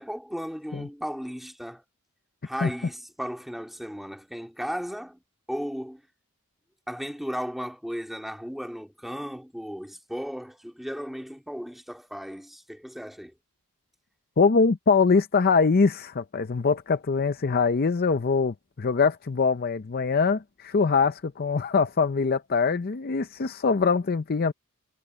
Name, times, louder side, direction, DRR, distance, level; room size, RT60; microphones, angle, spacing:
voice 1, 0.0-1.8 2.4-5.2 5.5-6.0 6.9-13.3, equal, ahead, 2.2 m, -35 dB
voice 2, 14.4-24.5, left 4 dB, 45° left, 0.5 m, -23 dB
head